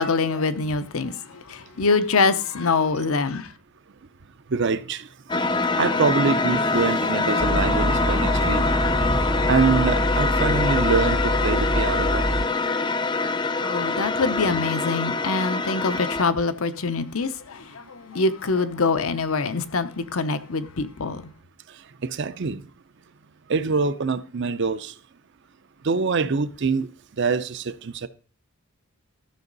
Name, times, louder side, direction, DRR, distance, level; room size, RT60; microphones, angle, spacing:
voice 1, 0.0-3.5 13.6-21.3, left 4 dB, 70° left, 0.8 m, -24 dB
voice 2, 4.5-5.1 5.7-8.7 9.5-12.5 21.7-22.7 23.5-24.9 25.8-26.9 27.2-28.1, right 4 dB, 55° right, 0.5 m, -25 dB
sound 1, 5.3-16.2, left 3 dB, 20° left, 0.4 m, -24 dB
sound 2, 7.4-12.5, equal, 15° right, 0.6 m, -25 dB
13.5 x 6.2 x 3.9 m
head